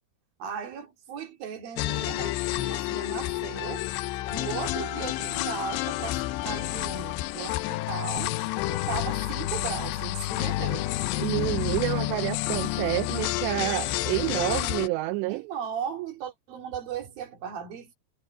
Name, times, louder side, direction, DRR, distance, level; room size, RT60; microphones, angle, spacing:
voice 1, 0.4-3.9 4.3-8.4 8.7-11.0 15.3-18.0, right 7 dB, 60° right, 4.5 m, -37 dB
sound 1, 1.8-14.9, left 17 dB, 90° left, 3.0 m, -30 dB
voice 2, 11.2-15.4, right 19 dB, 85° right, 2.9 m, -28 dB
omnidirectional pair, 4.9 m